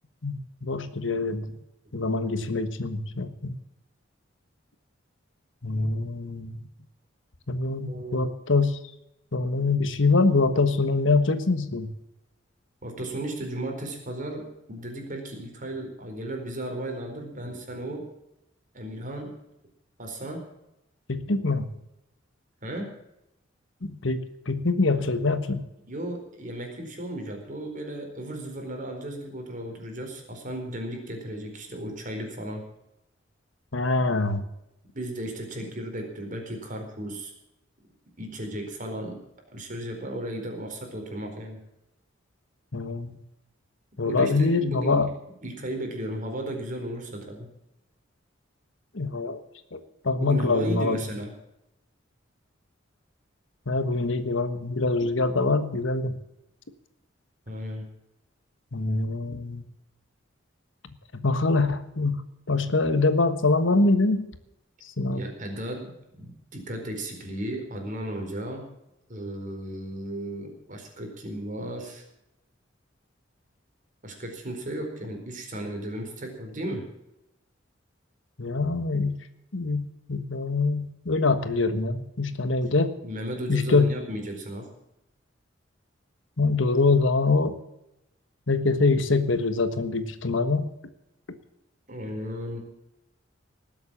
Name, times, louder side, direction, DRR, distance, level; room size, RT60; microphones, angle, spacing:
voice 1, 0.2-1.5 1.9-3.6 5.6-6.6 7.5-8.8 9.3-11.9 21.1-21.7 23.8-25.6 33.7-34.4 42.7-43.2 44.0-45.1 48.9-49.4 49.7-51.0 53.7-56.1 58.7-59.6 61.1-64.3 65.0-65.2 78.4-79.2 79.5-82.9 83.5-83.9 86.4-87.6 88.5-90.7, left 3 dB, 75° left, 11 dB, 1.4 m, -24 dB
voice 2, 7.9-8.3 12.8-18.1 18.7-19.3 20.0-20.4 22.6-22.9 25.9-32.6 34.9-37.3 38.2-39.2 39.5-41.6 44.0-45.0 45.4-47.5 50.2-51.3 57.5-57.9 65.1-68.6 69.1-72.0 74.0-76.8 83.0-84.7 91.9-92.6, right 1 dB, 45° right, 3 dB, 4.3 m, -35 dB
19.5 x 8.0 x 7.3 m, 0.86 s
head